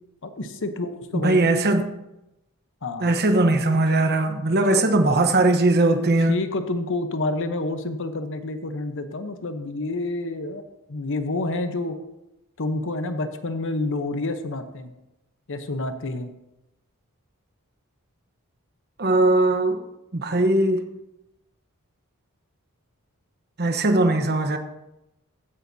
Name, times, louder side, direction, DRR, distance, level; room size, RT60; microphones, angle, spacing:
voice 1, 0.2-1.6 2.8-3.1 4.7-4.8 6.3-10.6 10.9-12.0 12.6-14.9 15.5-16.3, left 2 dB, 60° left, 0.9 m, -28 dB
voice 2, 1.1-1.9 3.0-6.3 19.0-19.8 20.1-20.8 23.6-24.6, right 2 dB, 50° right, 1.0 m, -20 dB
15.0 x 10.5 x 2.8 m
head